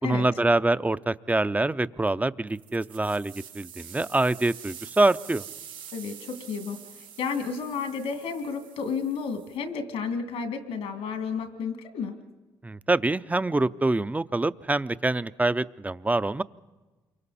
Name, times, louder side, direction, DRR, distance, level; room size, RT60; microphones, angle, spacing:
voice 1, 0.0-5.5 12.6-16.4, right 2 dB, 15° right, 15 dB, 0.6 m, -25 dB
sound 1, 2.5-9.6, right 8 dB, 75° right, 4.9 m, -46 dB
voice 2, 5.9-12.2, left 5 dB, 85° left, 6 dB, 2.5 m, -32 dB
28.5 x 24.0 x 4.3 m, 1.2 s
supercardioid pair, 55°, 10 cm